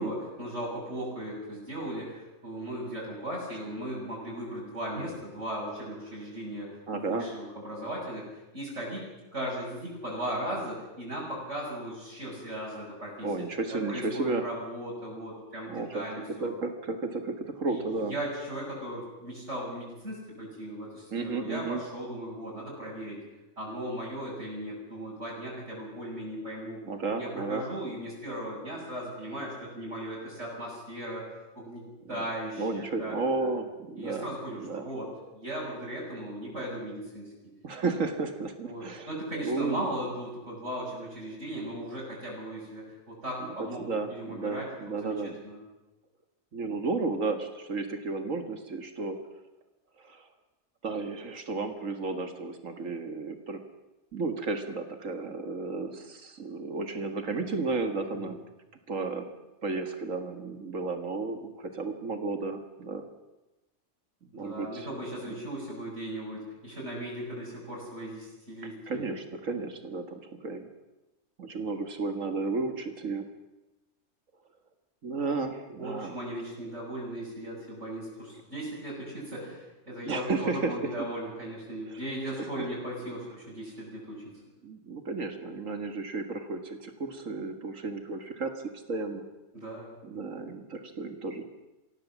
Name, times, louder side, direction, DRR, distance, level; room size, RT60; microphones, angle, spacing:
voice 1, 0.0-8.3 8.5-13.3 13.7-16.5 17.7-17.8 18.1-23.2 23.6-26.8 27.2-31.3 31.5-31.8 32.1-33.1 33.4-33.5 34.0-37.5 38.6-45.6 58.1-58.3 64.3-69.1 75.8-84.4 89.5-89.9, right 1 dB, 65° right, -7 dB, 7.0 m, -37 dB
voice 2, 6.9-7.3 13.2-14.4 15.7-16.0 16.4-18.2 21.1-21.8 26.9-27.6 32.1-32.2 32.6-34.3 34.6-34.9 37.6-39.1 39.4-39.8 43.4-45.4 46.5-49.2 50.0-50.3 50.8-53.6 54.1-58.4 58.9-59.3 59.6-63.1 64.3-64.9 65.3-65.4 68.9-70.7 71.4-73.3 75.0-76.2 80.0-81.1 81.9-82.0 82.6-82.7 84.6-88.5 88.9-89.2 90.0-91.5, right 3 dB, 85° right, 7 dB, 2.2 m, -33 dB
25.0 x 16.5 x 7.3 m, 1.0 s
omnidirectional pair, 1.3 m